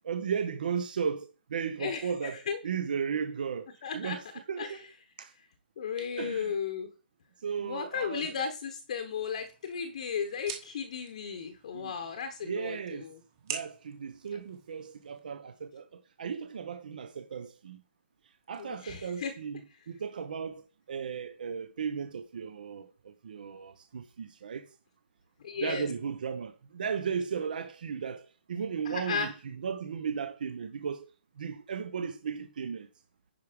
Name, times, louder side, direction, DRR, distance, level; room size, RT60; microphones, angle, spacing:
voice 1, 0.1-4.9 5.2-5.3 6.0-6.5 7.4-8.3 11.7-11.9 12.4-13.1 13.5-17.8 18.5-19.6 19.9-24.7 25.6-31.0 31.4-32.9, right 6 dB, 50° right, 0.8 m, -35 dB
voice 2, 3.8-4.2 4.6-4.8 5.8-6.9 7.6-13.2 18.6-19.3 25.4-25.9 28.9-29.3, left 6 dB, 40° left, 1.0 m, -35 dB
sound 1, 9.2-15.2, right 7 dB, 20° right, 1.2 m, -46 dB
10.0 x 4.7 x 5.1 m
hypercardioid pair, 180°, 6 cm